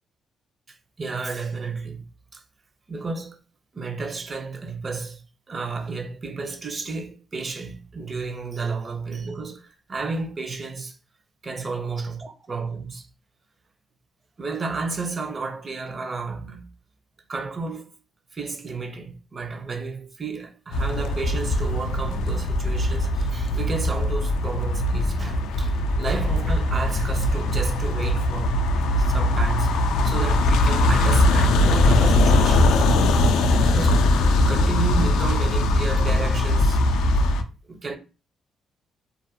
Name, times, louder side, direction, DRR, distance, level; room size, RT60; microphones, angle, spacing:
voice 1, 0.7-2.0 2.3-2.4 2.9-3.4 3.7-5.2 5.5-11.0 11.4-13.1 14.4-16.7 17.3-17.9 18.3-28.6 28.9-32.8 33.6-33.9 34.5-36.8 37.7-38.0, right 4 dB, 35° right, 0.5 m, -32 dB
sound 1, 20.7-37.4, left 1 dB, 85° left, 0.3 m, -20 dB
2.4 x 2.1 x 2.7 m
cardioid pair, 90°, 0 cm